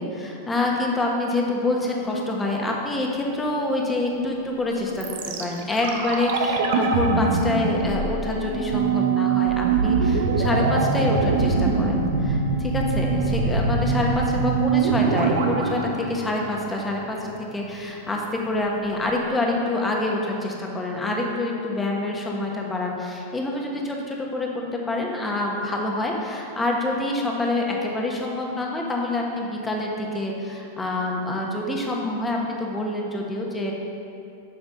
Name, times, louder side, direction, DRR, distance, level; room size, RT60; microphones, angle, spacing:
voice 1, 0.0-17.2 17.5-33.7, left 2 dB, 10° left, -1 dB, 1.3 m, -26 dB
sound 1, 5.0-17.0 17.3-17.4, right 4 dB, 70° right, 0.9 m, -23 dB
8.3 x 5.2 x 5.4 m, 2.6 s
hypercardioid pair, 120°, 0 cm